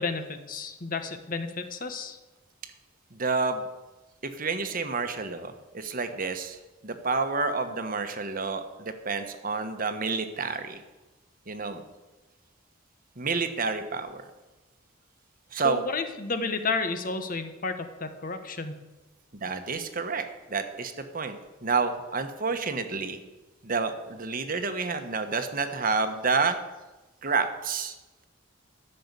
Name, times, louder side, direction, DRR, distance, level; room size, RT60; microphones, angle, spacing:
voice 1, 0.0-2.2 15.6-18.8, left 4 dB, 45° left, 8 dB, 1.2 m, -32 dB
voice 2, 3.1-3.6 4.2-10.8 11.5-11.8 13.2-14.2 15.5-15.8 19.4-23.2 23.6-26.6 27.2-27.9, right 4 dB, 45° right, 8 dB, 1.2 m, -29 dB
13.0 x 6.7 x 8.2 m, 1.1 s
head